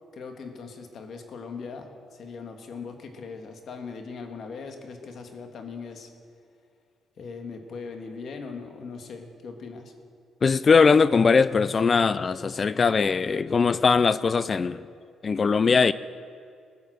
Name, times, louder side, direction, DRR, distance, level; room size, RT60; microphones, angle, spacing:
voice 1, 0.1-6.1 7.2-9.9, left 5 dB, 60° left, 1.7 m, -39 dB
voice 2, 10.4-14.8 15.2-15.9, left 5 dB, 35° left, 0.4 m, -20 dB
20.5 x 7.1 x 6.5 m
cardioid pair, 95°, 0 cm